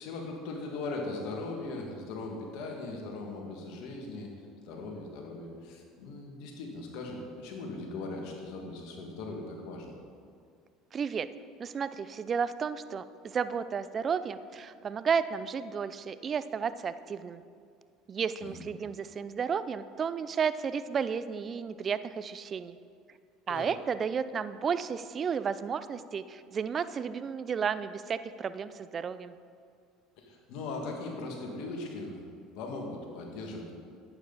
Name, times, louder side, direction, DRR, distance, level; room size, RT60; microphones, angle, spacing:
voice 1, 0.0-10.0 18.4-18.6 23.5-23.7 30.2-33.7, left 2 dB, 70° left, 1 dB, 2.0 m, -39 dB
voice 2, 10.9-11.3 11.6-17.4 18.1-22.8 23.5-29.3, right 6 dB, 35° right, 14 dB, 0.4 m, -32 dB
11.5 x 9.0 x 4.1 m, 2.2 s
hypercardioid pair, 85°, 0 cm